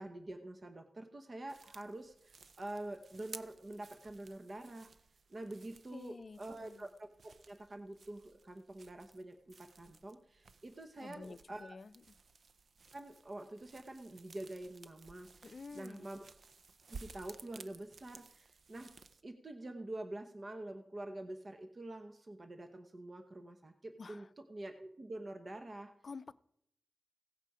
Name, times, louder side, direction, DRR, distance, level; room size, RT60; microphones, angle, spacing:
voice 1, 0.0-4.9 5.3-11.7 12.9-15.4 15.7-16.3 16.9-18.9 19.2-25.9, right 1 dB, 45° right, 6 dB, 1.0 m, -46 dB
sound 1, 1.5-19.2, right 4 dB, 70° right, 0.6 m, -57 dB
voice 2, 5.9-6.9 11.0-12.2 15.4-16.1 24.0-24.3 26.0-26.3, left 4 dB, 55° left, 15 dB, 0.5 m, -50 dB
16.5 x 8.3 x 4.9 m, 0.73 s
cardioid pair, 70°, 0 cm